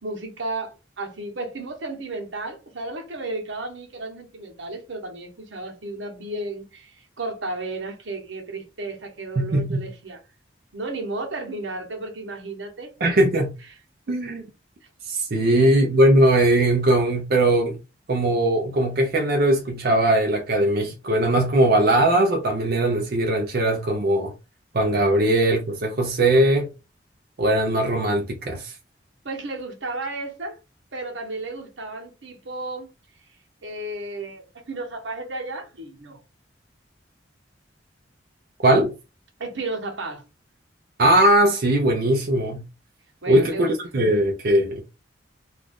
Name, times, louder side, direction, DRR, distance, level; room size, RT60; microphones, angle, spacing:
voice 1, 0.0-10.2 10.7-12.9 14.1-14.2 15.4-15.8 29.2-30.6 30.9-32.9 33.6-36.2 39.4-40.2 43.2-43.7, right 2 dB, 85° right, 1.0 m, -33 dB
voice 2, 9.4-9.9 13.0-13.5 14.1-14.4 15.0-17.8 18.1-24.3 24.7-26.7 27.4-28.7 38.6-38.9 41.0-42.6 43.3-43.7 43.9-44.9, right 1 dB, 55° right, 0.5 m, -20 dB
2.6 x 2.4 x 3.4 m
head